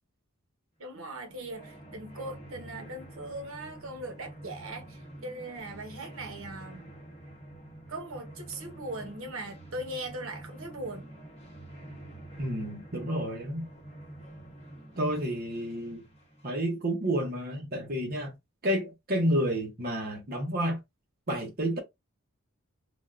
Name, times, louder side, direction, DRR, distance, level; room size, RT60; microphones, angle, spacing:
voice 1, 0.8-6.9 7.9-11.1, right 1 dB, 65° right, 0.9 m, -40 dB
sound 1, 0.9-16.7, right 1 dB, 25° left, 0.9 m, -48 dB
voice 2, 12.4-13.7 15.0-16.0 16.4-18.4 18.6-20.8 21.3-21.8, equal, 40° right, 0.8 m, -30 dB
3.5 x 2.2 x 2.4 m
head